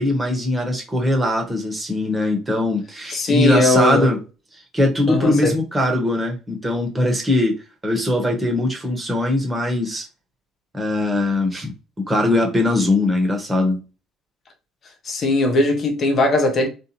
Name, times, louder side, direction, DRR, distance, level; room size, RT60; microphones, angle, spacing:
voice 1, 0.0-4.2 4.7-10.1 10.7-11.7 12.0-13.8, left 1 dB, 20° right, 1.4 m, -21 dB
voice 2, 3.1-4.1 5.1-5.5 15.0-16.7, left 2 dB, 45° left, 1.1 m, -19 dB
3.4 x 2.6 x 2.9 m
figure-of-eight pair, 55°, 0 cm